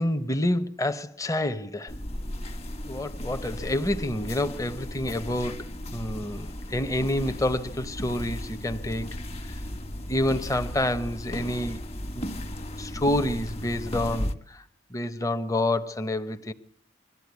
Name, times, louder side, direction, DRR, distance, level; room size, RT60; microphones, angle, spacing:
voice 1, 0.0-1.9 2.8-9.2 9.5-9.6 10.1-11.8 12.1-12.4 12.8-14.6 14.9-16.5, left 1 dB, 15° left, 0.9 m, -28 dB
sound 1, 1.9-14.4, equal, 35° left, 1.5 m, -35 dB
22.5 x 13.5 x 9.5 m
head